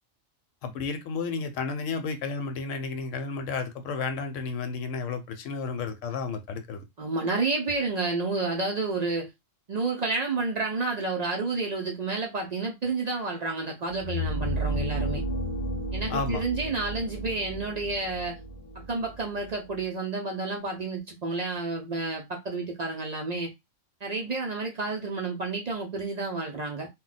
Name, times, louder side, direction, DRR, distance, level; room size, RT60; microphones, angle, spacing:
voice 1, 0.6-6.8 16.1-16.4, left 4 dB, 85° left, 0.9 m, -32 dB
voice 2, 7.0-9.3 9.7-15.2 15.9-18.4 18.7-23.5 24.0-26.9, right 3 dB, 60° right, 0.4 m, -30 dB
sound 1, 13.9-19.8, right 1 dB, 60° left, 0.8 m, -33 dB
2.2 x 2.2 x 3.9 m
omnidirectional pair, 1.3 m